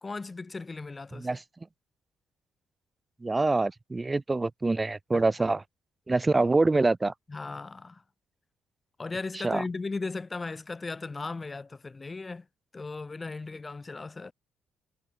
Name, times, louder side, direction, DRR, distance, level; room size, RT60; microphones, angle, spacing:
voice 1, 0.0-1.4 5.1-5.2 7.3-8.0 9.0-12.5 12.7-14.3, left 3 dB, 25° left, 0.8 m, -37 dB
voice 2, 1.1-1.4 3.2-5.6 6.1-7.1 9.3-9.6, right 3 dB, 20° right, 0.7 m, -25 dB
cardioid pair, 90°, 0 cm